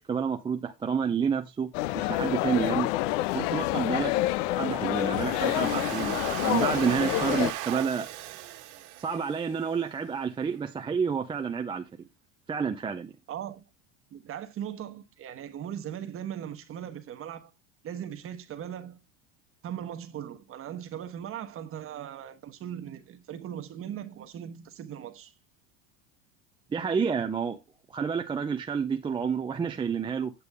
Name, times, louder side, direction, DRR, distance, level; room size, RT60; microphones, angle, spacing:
voice 1, 0.0-1.7 1.9-2.9 3.3-4.1 4.5-8.1 9.0-11.8 12.5-13.1 26.7-27.6 27.9-30.3, right 6 dB, 15° right, 0.5 m, -29 dB
sound 1, 1.7-7.5, left 17 dB, 70° left, 0.5 m, -28 dB
Domestic sounds home sounds, 5.0-9.9, right 16 dB, 70° right, 1.8 m, -37 dB
voice 2, 13.3-13.6 14.1-17.5 17.8-19.0 19.6-25.3, right 10 dB, 35° right, 1.1 m, -39 dB
8.4 x 6.8 x 3.5 m
supercardioid pair, 130°, 39 cm